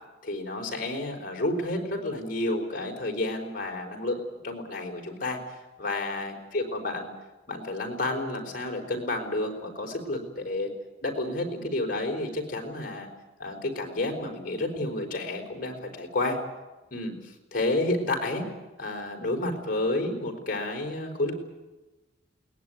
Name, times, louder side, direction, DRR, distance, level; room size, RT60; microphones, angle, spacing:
voice 1, 0.2-4.2 4.4-5.4 5.8-7.1 7.5-10.7 11.0-13.1 13.4-16.4 16.9-18.5 18.8-21.3, left 2 dB, 45° left, 2 dB, 4.4 m, -30 dB
22.0 x 19.5 x 9.3 m, 1.1 s
head